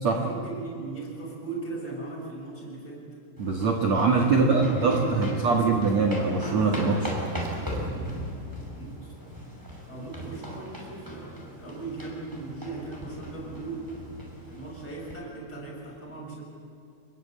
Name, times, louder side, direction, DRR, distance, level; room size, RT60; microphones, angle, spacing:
voice 1, 0.1-3.1 4.0-5.8 8.7-9.0 9.9-13.9 14.4-16.4, right 3 dB, 15° left, -3 dB, 7.4 m, -38 dB
sound 1, 3.4-15.1, equal, 5° right, 5.2 m, -38 dB
voice 2, 3.4-7.1, right 4 dB, 65° right, 2 dB, 1.7 m, -23 dB
26.5 x 21.5 x 8.6 m, 2.6 s
omnidirectional pair, 5.9 m